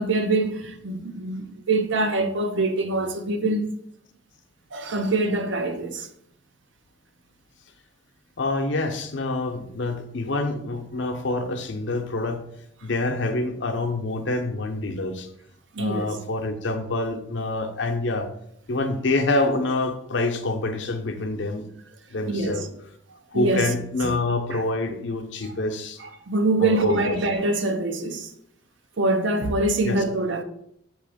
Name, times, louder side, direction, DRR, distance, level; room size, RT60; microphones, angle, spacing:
voice 1, 0.0-3.7 4.7-6.1 15.7-16.1 22.2-22.7 23.3-23.6 24.0-24.1 24.5-24.6 26.0-28.3 29.0-30.4, right 2 dB, 75° right, 0.7 m, -24 dB
voice 2, 8.4-12.4 12.8-15.3 15.8-18.3 18.7-21.7 22.1-22.7 23.3-26.0 26.6-27.2 29.8-30.0, left 2 dB, 70° left, 0.7 m, -26 dB
6.3 x 3.0 x 4.9 m
head